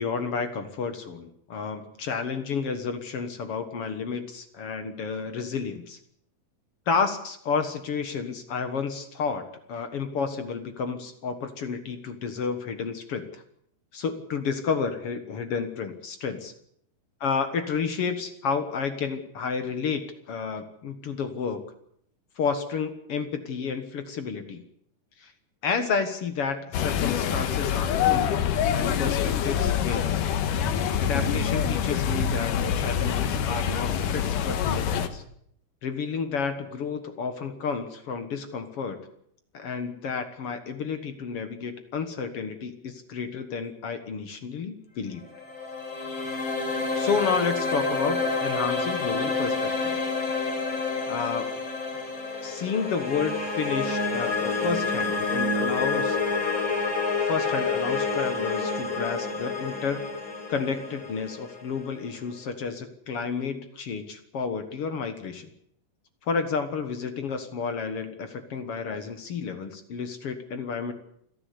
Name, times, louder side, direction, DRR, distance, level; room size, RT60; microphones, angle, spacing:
voice 1, 0.0-6.0 6.9-13.4 13.9-16.5 17.2-21.6 22.4-24.6 25.2-25.3 25.6-28.4 28.7-30.2 31.0-35.2 35.8-39.0 39.5-45.2 46.9-49.9 51.1-51.5 52.4-56.2 57.2-60.0 60.5-65.5 66.3-70.9, left 5 dB, 55° left, 9 dB, 1.9 m, -31 dB
sound 1, 26.7-35.1, left 8 dB, 70° left, 2.8 m, -25 dB
sound 2, 45.2-62.3, left 3 dB, 35° left, 4.8 m, -28 dB
28.5 x 11.0 x 8.5 m, 0.70 s
omnidirectional pair, 4.1 m